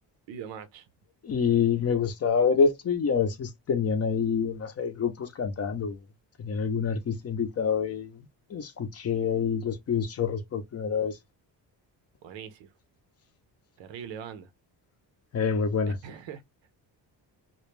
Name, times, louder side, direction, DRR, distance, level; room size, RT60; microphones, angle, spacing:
voice 1, 0.3-0.9 12.2-12.7 13.8-14.5 16.0-16.4, right 8 dB, 90° right, 0.6 m, -41 dB
voice 2, 1.2-6.0 6.4-8.1 8.5-11.2 15.3-16.0, left 6 dB, 35° left, 0.5 m, -27 dB
2.2 x 2.1 x 3.0 m
cardioid pair, 115°, 43 cm